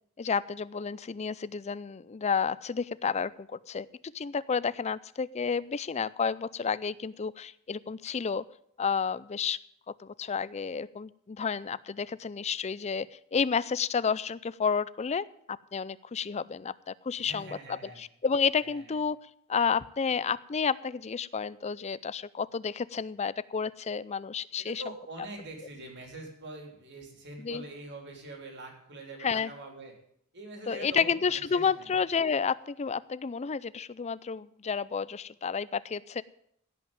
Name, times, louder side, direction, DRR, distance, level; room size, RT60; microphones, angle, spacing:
voice 1, 0.2-3.9 4.1-8.4 8.8-9.6 10.0-13.1 13.3-19.2 19.5-24.8 27.4-27.6 29.2-29.5 30.7-36.2, left 6 dB, 30° left, 18 dB, 0.4 m, -31 dB
voice 2, 17.2-18.0 18.6-19.0 24.6-29.9 30.3-31.9, right 2 dB, 50° right, 2 dB, 3.3 m, -44 dB
16.0 x 5.9 x 8.8 m, 0.69 s
head